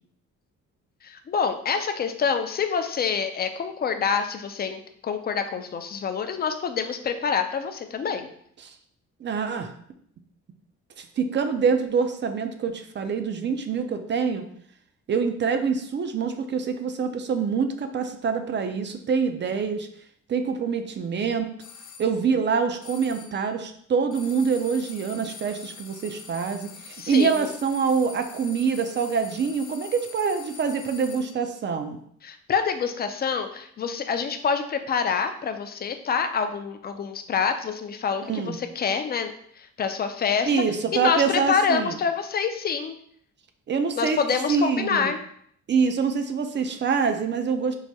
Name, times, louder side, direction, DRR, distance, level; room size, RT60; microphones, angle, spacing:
voice 1, 1.0-8.3 27.0-27.5 32.2-39.3 39.6-40.5 40.9-42.9 44.0-45.2, left 6 dB, 35° left, 8 dB, 0.4 m, -26 dB
voice 2, 9.2-9.7 11.0-14.4 15.1-19.9 20.3-21.5 22.0-32.0 38.2-38.6 40.4-42.0 43.7-44.2 44.5-45.1 45.7-47.8, right 5 dB, 40° right, 7 dB, 0.4 m, -25 dB
sound 1, 21.6-22.1 22.8-23.5 24.1-31.5, left 6 dB, 75° left, 0.7 m, -44 dB
4.7 x 2.1 x 2.7 m, 0.66 s
cardioid pair, 90°, 30 cm